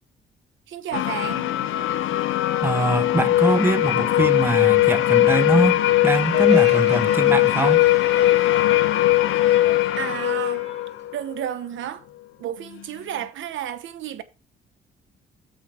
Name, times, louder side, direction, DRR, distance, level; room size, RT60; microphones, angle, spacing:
voice 1, 0.7-1.5 9.5-10.7 11.1-12.1 12.4-14.2, right 10 dB, 75° right, 1.1 m, -32 dB
sound 1, 0.9-11.5, left 15 dB, 80° left, 0.7 m, -20 dB
voice 2, 2.6-7.9, right 2 dB, 10° right, 1.1 m, -23 dB
Crowd, 6.1-11.6, right 3 dB, 35° right, 3.3 m, -40 dB
7.6 x 6.0 x 4.9 m
cardioid pair, 90°, 20 cm